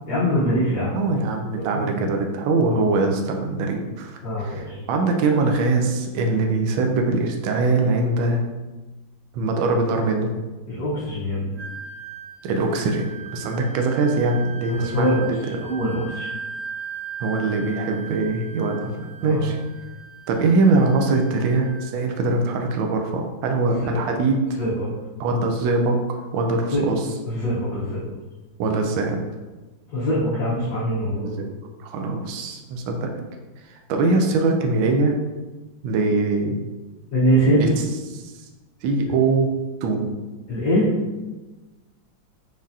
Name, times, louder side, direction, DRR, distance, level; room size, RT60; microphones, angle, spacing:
voice 1, 0.1-1.0 1.7-1.9 4.2-4.8 10.7-11.5 14.7-16.3 19.2-19.4 23.8-24.1 24.6-24.9 26.7-26.8 27.2-28.0 29.9-31.3 37.1-37.7 40.5-40.9, equal, 55° left, -9 dB, 1.5 m, -23 dB
voice 2, 0.9-8.4 9.3-10.3 12.4-15.4 17.2-18.9 19.2-19.6 20.3-24.4 25.2-27.0 28.6-29.2 31.1-31.5 31.8-33.1 33.7-35.2 35.8-36.6 37.6-37.7 38.1-38.2 38.8-39.5 39.8-40.1, right 3 dB, 75° right, 3 dB, 1.3 m, -22 dB
Wind instrument woodwind instrument, 11.6-21.9, right 5 dB, 45° right, 1.0 m, -38 dB
4.8 x 3.9 x 2.7 m, 1.2 s
omnidirectional pair, 2.2 m